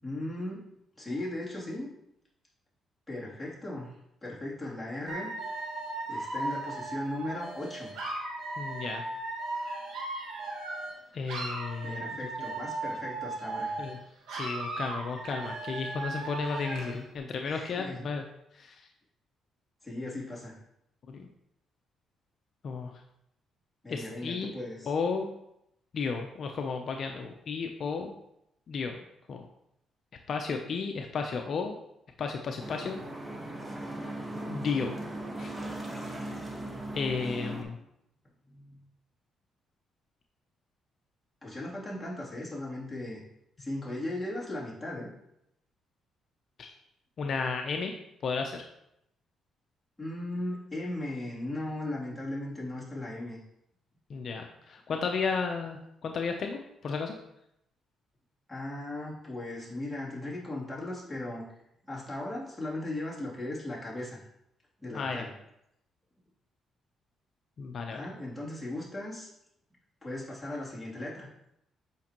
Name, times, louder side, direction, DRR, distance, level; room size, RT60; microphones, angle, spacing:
voice 1, 0.0-0.7 1.0-1.9 3.1-3.9 4.2-5.3 6.1-7.9 11.8-13.8 17.5-18.0 19.8-20.6 23.8-24.9 38.4-38.9 41.4-43.2 43.6-45.1 50.0-53.4 58.5-61.5 61.9-64.2 64.8-65.3 67.9-69.3 70.0-71.3, left 1 dB, 5° left, -7 dB, 2.9 m, -37 dB
Dog / Alarm, 5.1-11.0 11.3-14.0 14.3-17.0, right 2 dB, 85° right, 1.8 m, -37 dB
voice 2, 8.6-9.0 11.1-12.2 13.8-14.0 14.3-18.2 18.5-18.9 21.1-21.3 22.6-22.9 23.9-24.5 24.9-25.3 25.9-28.1 28.7-29.0 29.3-29.5 30.3-31.8 32.2-33.0 34.5-34.9 35.4-35.5 36.9-37.8 46.6-46.7 47.2-47.9 48.2-48.6 54.1-57.2 64.9-65.2 67.6-68.0, left 5 dB, 55° left, 4 dB, 0.6 m, -33 dB
sound 1, 32.6-37.6, right 1 dB, 20° right, 1.3 m, -38 dB
8.3 x 5.3 x 3.0 m, 0.80 s
cardioid pair, 90°, 0 cm